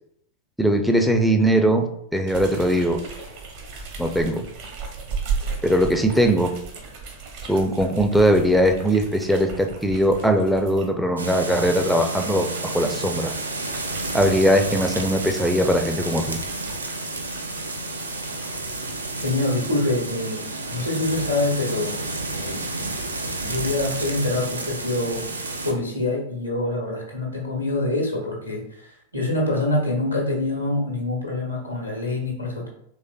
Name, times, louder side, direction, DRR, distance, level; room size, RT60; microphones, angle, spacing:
voice 1, 0.6-1.8 2.1-3.0 4.0-4.4 5.6-6.5 7.5-12.5 12.7-13.3 14.1-16.4, equal, ahead, 4 dB, 0.4 m, -20 dB
sound 1, 2.2-10.9 11.5-18.7, right 5 dB, 50° right, 0.9 m, -36 dB
sound 2, 11.2-25.7, right 2 dB, 80° right, 0.4 m, -31 dB
voice 2, 19.2-20.4 20.7-21.9 22.3-22.7 23.4-25.2 25.6-32.7, left 2 dB, 90° left, -2 dB, 0.9 m, -25 dB
3.9 x 3.1 x 2.2 m, 0.74 s
figure-of-eight pair, 90°, 0 cm